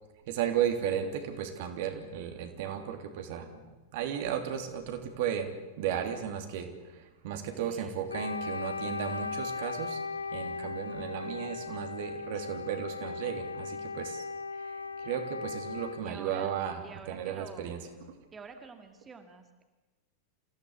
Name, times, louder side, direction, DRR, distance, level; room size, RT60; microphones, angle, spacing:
voice 1, 0.3-5.5 5.8-10.0 10.3-14.2 14.5-17.8, right 9 dB, 50° right, 5 dB, 3.1 m, -35 dB
voice 2, 7.5-7.9 16.0-16.5 16.8-17.8 18.3-19.6, right 5 dB, 20° right, 7 dB, 2.2 m, -48 dB
Wind instrument woodwind instrument, 8.1-16.1, left 4 dB, 80° left, 0.8 m, -37 dB
27.5 x 16.5 x 8.2 m, 1.1 s
figure-of-eight pair, 90°, 0 cm